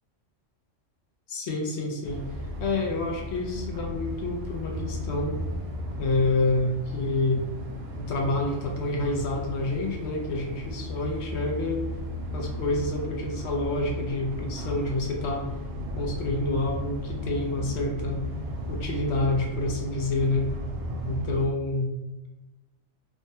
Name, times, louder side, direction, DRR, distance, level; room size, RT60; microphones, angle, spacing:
voice 1, 1.3-2.3 2.6-5.4 6.0-7.4 8.0-11.8 12.3-15.5 16.0-18.2 18.7-20.5 21.0-21.9, left 2 dB, 65° left, 0 dB, 0.8 m, -28 dB
sound 1, 2.0-21.5, left 1 dB, 60° right, 0.7 m, -35 dB
3.3 x 2.1 x 2.7 m, 1.0 s
omnidirectional pair, 1.3 m